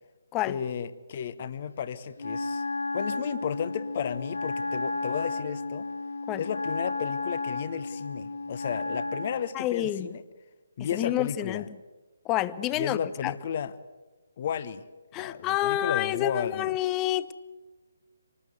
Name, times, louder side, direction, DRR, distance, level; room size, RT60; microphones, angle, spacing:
voice 1, 0.5-2.6 2.9-5.9 6.4-10.2 10.8-11.7 12.7-13.7 14.4-14.8 15.1-16.7, left 8 dB, 35° left, 1.0 m, -33 dB
Wind instrument woodwind instrument, 2.2-9.4, left 3 dB, 60° left, 3.8 m, -33 dB
voice 2, 9.5-10.1 10.9-11.6 12.2-13.3 15.1-17.3, left 13 dB, 15° left, 0.8 m, -28 dB
27.0 x 20.0 x 8.2 m
figure-of-eight pair, 140°, 0 cm